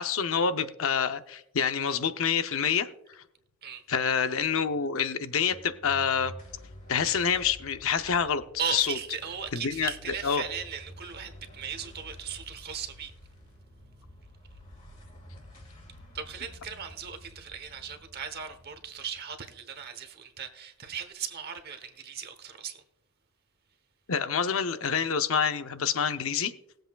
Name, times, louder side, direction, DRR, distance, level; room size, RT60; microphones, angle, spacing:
voice 1, 0.0-2.9 3.9-6.3 6.9-8.4 8.7-9.0 9.5-9.9 10.2-10.4 24.1-26.5, left 6 dB, 65° left, 0.7 m, -27 dB
sound 1, 5.5-20.1, equal, 35° left, 2.2 m, -50 dB
voice 2, 8.6-13.1 16.1-22.8, right 7 dB, 45° right, 1.0 m, -37 dB
20.0 x 7.7 x 2.3 m
head